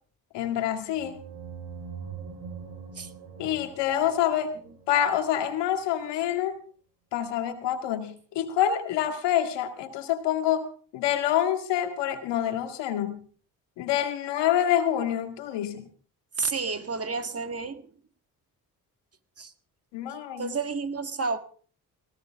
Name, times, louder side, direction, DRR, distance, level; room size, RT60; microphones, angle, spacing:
voice 1, 0.3-1.2 3.4-4.5 4.9-6.6 7.1-10.7 10.9-13.2 13.8-15.9 19.9-20.5, left 10 dB, 90° left, 6 dB, 2.0 m, -27 dB
sound 1, 0.9-5.5, right 6 dB, 75° right, 4.5 m, -43 dB
voice 2, 16.4-17.9 19.4-19.5 20.4-21.4, right 4 dB, 35° right, 9 dB, 1.7 m, -30 dB
18.0 x 16.5 x 3.6 m, 0.44 s
supercardioid pair, 60°, 41 cm